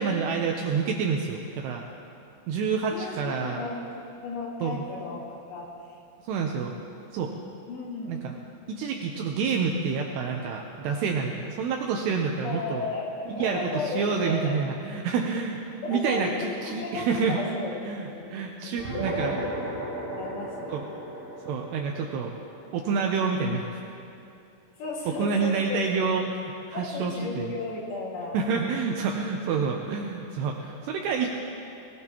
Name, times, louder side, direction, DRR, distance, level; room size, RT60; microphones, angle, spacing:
voice 1, 0.0-1.8 2.5-3.6 4.6-4.9 6.3-6.8 7.1-7.3 8.1-8.4 8.7-12.9 13.3-15.6 15.9-17.4 17.8-19.4 20.7-20.9 21.5-22.3 22.7-23.8 25.1-27.5 28.3-31.3, right 5 dB, 75° right, 1 dB, 2.7 m, -28 dB
voice 2, 2.9-3.8 4.2-5.7 7.7-8.1 12.4-14.6 15.8-18.4 18.6-20.8 24.8-25.8 26.7-28.4, left 3 dB, 65° left, -3 dB, 3.8 m, -35 dB
sound 1, 18.8-23.6, right 2 dB, 20° right, 4.9 m, -35 dB
22.5 x 18.0 x 3.0 m, 2.6 s
omnidirectional pair, 5.2 m